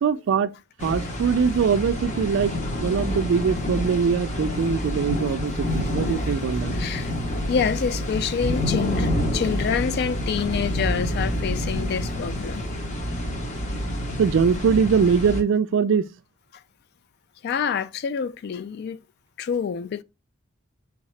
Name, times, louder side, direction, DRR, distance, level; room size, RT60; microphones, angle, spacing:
voice 1, 0.0-0.5 0.8-6.7 14.2-16.1, right 6 dB, 60° right, 0.3 m, -22 dB
sound 1, 0.8-15.4, left 1 dB, 35° left, 0.7 m, -28 dB
voice 2, 6.7-7.2 7.5-12.6 16.5-16.6 17.4-19.0 19.4-20.0, left 7 dB, 50° left, 0.3 m, -27 dB
3.6 x 3.5 x 3.1 m
head